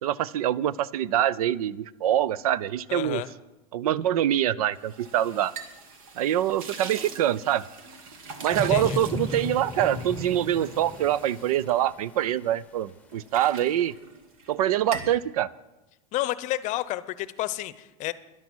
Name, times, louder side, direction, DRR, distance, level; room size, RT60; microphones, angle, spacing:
voice 1, 0.0-3.2 3.7-5.5 6.2-7.6 8.4-13.9 14.5-15.5, right 11 dB, 90° right, 22 dB, 0.5 m, -25 dB
voice 2, 2.9-3.3 8.7-9.0 16.1-18.1, left 16 dB, 40° left, 16 dB, 0.7 m, -30 dB
sound 1, 4.7-12.5 12.9-14.6 14.8-15.2, right 4 dB, 70° right, 1.8 m, -43 dB
sound 2, 8.5-12.5 13.0-13.1, left 3 dB, 5° left, 0.9 m, -35 dB
13.0 x 11.0 x 6.2 m, 1.0 s
supercardioid pair, 130°, 18 cm